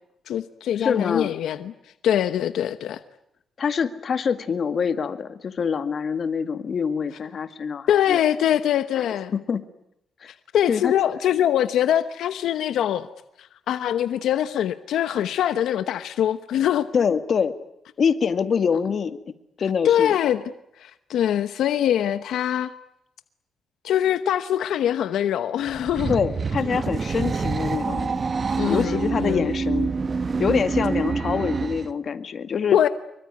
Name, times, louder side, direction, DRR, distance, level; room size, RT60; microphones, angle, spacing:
voice 1, 0.3-1.7 2.0-3.0 7.9-9.3 10.5-13.1 13.4-16.9 19.8-20.4 20.8-22.7 23.8-26.1 28.5-29.5 32.7-32.9, left 10 dB, 90° left, 1.0 m, -23 dB
voice 2, 0.8-1.4 3.6-8.2 9.0-9.1 9.3-9.6 10.2-10.3 10.7-10.9 16.9-17.5 18.0-19.2 19.6-20.1 26.1-28.1 28.7-29.9 30.4-32.8, left 6 dB, 50° left, 1.9 m, -25 dB
sound 1, 25.7-31.9, right 4 dB, 40° right, 1.0 m, -26 dB
25.5 x 23.5 x 9.7 m
cardioid pair, 110°, 0 cm